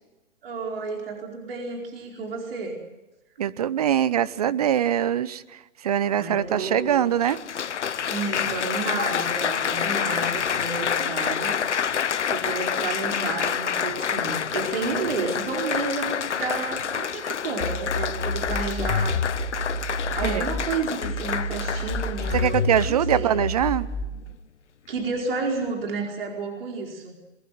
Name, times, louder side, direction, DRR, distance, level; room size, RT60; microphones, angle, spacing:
voice 1, 0.4-2.8 6.2-7.1 8.1-11.5 12.3-19.2 20.1-23.3 24.9-27.1, right 4 dB, 45° right, 1 dB, 4.7 m, -31 dB
voice 2, 3.4-5.4 5.8-7.4 20.2-20.5 22.3-23.9, right 10 dB, 30° right, 18 dB, 0.7 m, -23 dB
Applause, 6.4-6.5 7.2-23.1 23.9-24.2, left 8 dB, 60° left, 0.9 m, -28 dB
sound 1, 17.6-20.6 21.0-24.1, left 2 dB, 40° left, 2.6 m, -28 dB
22.0 x 21.0 x 7.7 m, 1.0 s
figure-of-eight pair, 135°, 39 cm